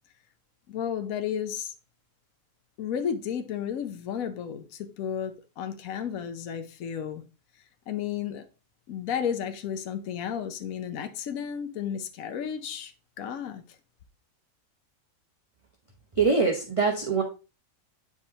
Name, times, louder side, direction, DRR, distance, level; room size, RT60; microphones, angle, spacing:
voice 1, 0.7-1.7 2.8-7.2 7.9-8.5 8.9-12.9 13.2-13.6, left 8 dB, 65° left, 1.2 m, -33 dB
voice 2, 16.1-17.2, right 4 dB, 25° right, 0.9 m, -23 dB
9.5 x 4.9 x 2.8 m
omnidirectional pair, 1.6 m